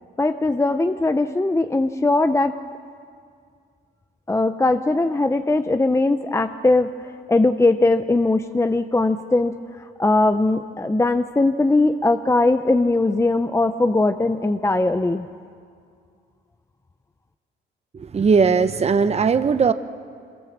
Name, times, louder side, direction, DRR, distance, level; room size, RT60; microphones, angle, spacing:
voice 1, 0.2-2.5 4.3-15.3, left 2 dB, 15° left, 9 dB, 0.7 m, -20 dB
voice 2, 17.9-19.7, right 5 dB, 30° right, 11 dB, 0.9 m, -18 dB
25.5 x 21.5 x 7.3 m, 2.2 s
cardioid pair, 90°, 20 cm